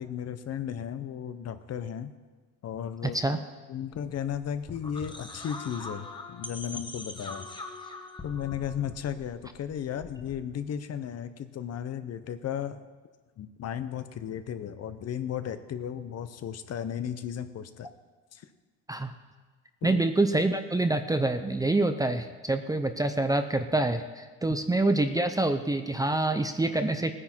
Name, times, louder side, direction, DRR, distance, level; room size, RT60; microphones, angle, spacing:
voice 1, 0.0-2.1 2.6-3.4 3.7-7.5 8.2-12.9 13.4-17.9 18.3-18.4 19.8-20.0, left 9 dB, 45° left, 11 dB, 0.8 m, -35 dB
voice 2, 3.0-3.4 18.9-19.1 19.8-27.1, right 2 dB, 10° right, 8 dB, 0.6 m, -26 dB
sound 1, 3.9-10.7, left 2 dB, 15° left, 1.3 m, -43 dB
17.5 x 9.9 x 4.5 m, 1.4 s
cardioid pair, 115°, 35 cm